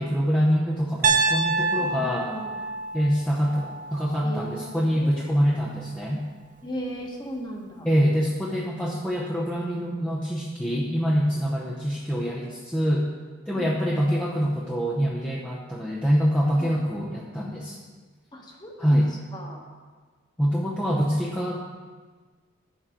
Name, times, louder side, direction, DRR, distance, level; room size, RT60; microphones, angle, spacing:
voice 1, 0.0-2.3 2.9-6.2 7.8-13.1 13.5-17.8 18.8-19.1 20.4-21.6, equal, 5° left, -5 dB, 0.7 m, -25 dB
Piano, 1.0-5.1, right 3 dB, 40° right, 0.6 m, -27 dB
voice 2, 1.8-2.7 4.2-5.5 6.6-7.9 13.5-13.8 16.6-16.7 18.3-19.6, equal, 20° left, 0 dB, 1.3 m, -37 dB
10.0 x 7.3 x 5.1 m, 1.5 s
head